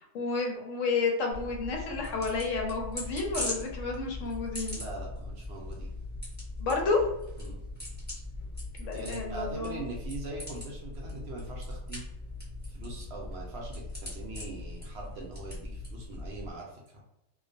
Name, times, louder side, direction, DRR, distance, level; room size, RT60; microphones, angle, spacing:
voice 1, 0.1-4.8 6.6-7.1 8.8-9.9, left 4 dB, 75° left, 0 dB, 0.9 m, -30 dB
sound 1, 1.3-16.5, left 1 dB, 10° left, 0.9 m, -40 dB
voice 2, 4.7-5.9 7.4-7.6 8.9-12.0 12.6-16.8, right 2 dB, 65° right, -1 dB, 0.7 m, -41 dB
2.4 x 2.2 x 2.5 m, 0.89 s
omnidirectional pair, 1.4 m